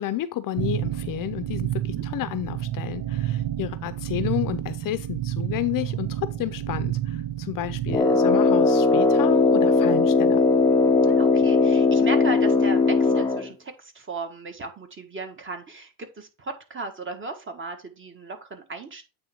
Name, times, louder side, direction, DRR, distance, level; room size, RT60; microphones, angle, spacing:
voice 1, 0.0-10.4, left 13 dB, 50° left, 0.7 m, -31 dB
sound 1, 0.6-8.0, right 13 dB, 55° right, 0.9 m, -30 dB
Brass instrument, 7.9-13.5, left 4 dB, 10° left, 0.6 m, -19 dB
voice 2, 11.0-19.0, right 3 dB, 25° right, 1.6 m, -36 dB
8.7 x 3.4 x 4.4 m
supercardioid pair, 95°, 43 cm